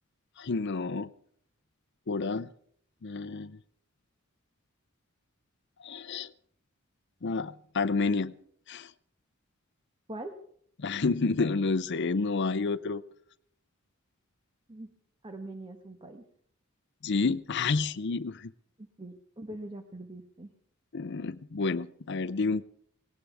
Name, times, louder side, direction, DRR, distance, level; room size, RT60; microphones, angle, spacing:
voice 1, 0.4-1.1 2.1-2.5 3.0-3.6 5.8-6.3 7.2-8.4 8.7-8.9 10.8-13.0 17.0-18.5 20.9-22.6, left 4 dB, 55° left, 14 dB, 0.6 m, -29 dB
voice 2, 15.2-16.2 18.8-20.5, right 1 dB, 25° right, 6 dB, 1.2 m, -42 dB
18.5 x 18.0 x 3.5 m, 0.64 s
head